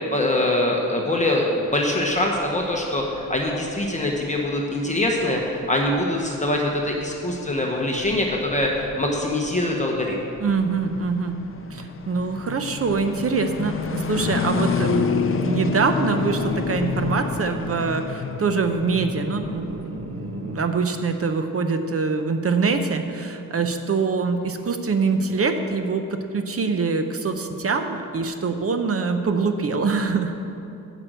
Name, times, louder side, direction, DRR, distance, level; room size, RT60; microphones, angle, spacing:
voice 1, 0.1-10.2, left 1 dB, 20° left, -1 dB, 1.0 m, -23 dB
sound 1, 1.7-20.7, left 5 dB, 40° left, 0.6 m, -30 dB
voice 2, 10.4-11.4 11.7-30.4, right 4 dB, 45° right, 7 dB, 0.7 m, -24 dB
10.5 x 6.2 x 7.9 m, 2.8 s
wide cardioid pair, 170°, 32 cm